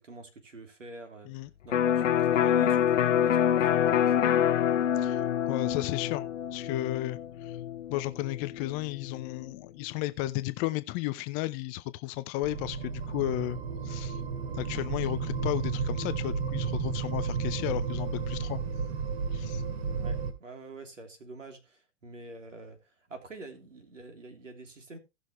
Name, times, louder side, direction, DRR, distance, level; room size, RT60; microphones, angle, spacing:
voice 1, 0.0-1.3 1.6-4.5 19.9-25.0, right 2 dB, 90° right, 3.3 m, -47 dB
Electric guitar, 1.7-9.4, left 9 dB, 85° left, 0.6 m, -26 dB
voice 2, 5.0-6.3 6.5-7.6 7.9-13.6 13.8-14.2 14.5-18.6 19.3-19.6, left 16 dB, 25° left, 0.5 m, -33 dB
sound 1, 12.4-20.3, right 5 dB, 60° right, 2.5 m, -32 dB
17.0 x 6.2 x 3.0 m
hypercardioid pair, 120°, 37 cm